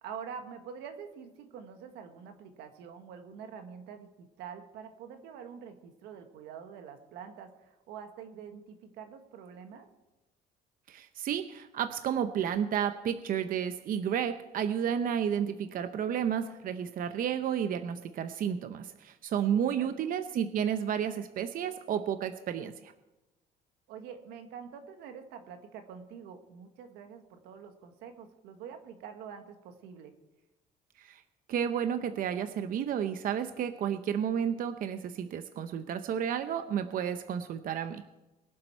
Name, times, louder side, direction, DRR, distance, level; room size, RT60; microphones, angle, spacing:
voice 1, 0.0-9.9 19.5-19.9 23.9-30.1, right 7 dB, 90° right, 7 dB, 1.5 m, -46 dB
voice 2, 10.9-22.9 31.0-31.2 31.5-38.0, right 8 dB, 55° right, 9 dB, 0.7 m, -31 dB
22.0 x 7.6 x 4.5 m, 1.0 s
cardioid pair, 110°, 17 cm